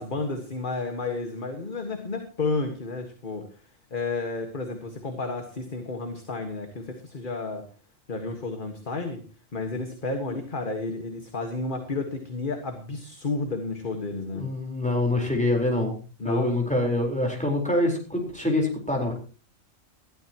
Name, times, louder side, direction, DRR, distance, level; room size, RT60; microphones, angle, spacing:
voice 1, 0.0-3.6 3.9-7.7 8.1-9.2 9.5-14.5 16.2-16.5, left 3 dB, 40° left, 5 dB, 1.8 m, -31 dB
voice 2, 14.3-16.0 16.2-19.1, left 1 dB, 5° left, 1 dB, 4.3 m, -25 dB
20.0 x 13.5 x 3.0 m, 0.37 s
omnidirectional pair, 1.3 m